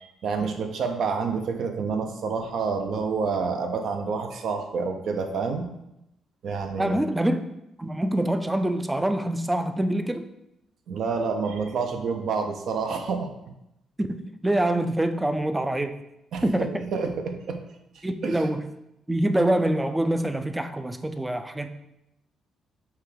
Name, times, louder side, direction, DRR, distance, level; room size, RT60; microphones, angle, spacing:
voice 1, 0.0-5.7 6.4-7.0 10.9-13.3 16.3-17.6 18.2-18.5, right 5 dB, 70° right, 5 dB, 0.5 m, -28 dB
voice 2, 6.8-7.4 7.8-10.3 14.0-16.0 16.4-16.8 18.0-18.7 19.1-21.7, right 1 dB, 10° right, 9 dB, 0.3 m, -25 dB
5.6 x 2.3 x 3.3 m, 0.86 s
cardioid pair, 90°, 0 cm